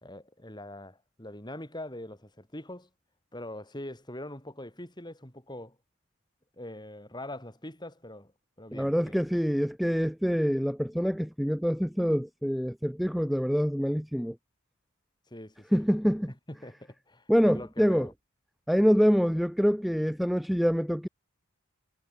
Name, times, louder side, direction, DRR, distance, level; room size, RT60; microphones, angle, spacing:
voice 1, 0.0-2.9 3.3-5.8 6.6-8.3 8.6-9.1 15.3-15.8 16.5-18.1, left 1 dB, 20° left, 4.3 m, -43 dB
voice 2, 8.7-14.4 15.7-16.3 17.3-18.1 18.7-21.1, equal, ahead, 0.6 m, -25 dB
head